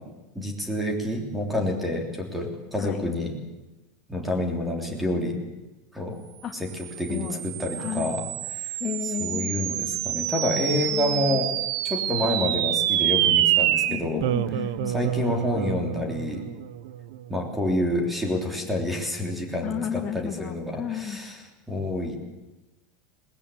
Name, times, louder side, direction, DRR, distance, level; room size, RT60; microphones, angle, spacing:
voice 1, 0.3-3.3 4.1-5.4 5.9-6.2 6.6-6.7 7.0-8.2 8.5-8.7 9.2-11.5 11.8-14.3 14.9-16.4 17.3-21.3 21.7-22.2, left 1 dB, 5° right, 2 dB, 3.4 m, -28 dB
sound 1, 6.8-17.4, right 13 dB, 65° right, 0.9 m, -27 dB
voice 2, 7.1-7.4 7.8-8.1 8.8-9.6 10.9-11.4 13.9-14.9 19.6-21.2, left 9 dB, 20° left, 4 dB, 2.0 m, -33 dB
21.0 x 20.5 x 8.6 m, 1.1 s
supercardioid pair, 170°, 2 cm